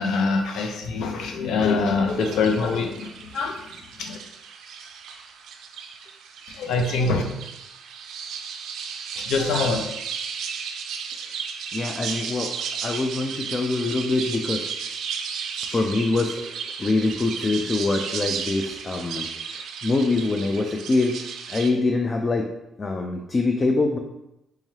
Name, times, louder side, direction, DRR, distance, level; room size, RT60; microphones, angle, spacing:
voice 1, 0.0-4.2 6.5-7.2 9.2-9.8, left 4 dB, 75° left, 3 dB, 0.6 m, -24 dB
sound 1, 2.1-21.7, right 6 dB, 75° right, 0.4 m, -34 dB
voice 2, 11.7-12.6 12.8-14.7 15.7-21.2 21.5-22.5 22.8-24.0, left 3 dB, 30° left, 3 dB, 0.3 m, -24 dB
3.5 x 3.1 x 2.8 m, 0.88 s
cardioid pair, 115°, 0 cm